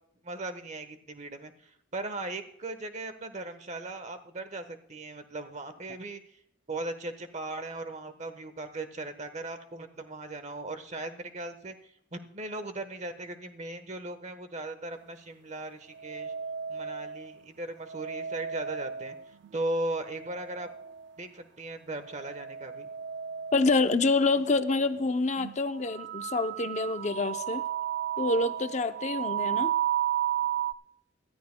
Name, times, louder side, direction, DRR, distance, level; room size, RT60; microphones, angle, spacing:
voice 1, 0.2-6.2 6.7-11.8 12.1-16.3 16.7-19.2 19.5-20.7 21.2-22.9, right 2 dB, 35° right, 9 dB, 1.1 m, -38 dB
sound 1, 16.0-17.3 17.8-19.5 19.9-21.0 22.1-23.8 24.4-24.5 25.4-25.6 25.9-30.7, right 10 dB, 60° right, 0.4 m, -33 dB
voice 2, 23.5-27.6 28.2-29.7, left 3 dB, 35° left, 10 dB, 0.6 m, -27 dB
22.5 x 13.5 x 2.2 m, 0.71 s
head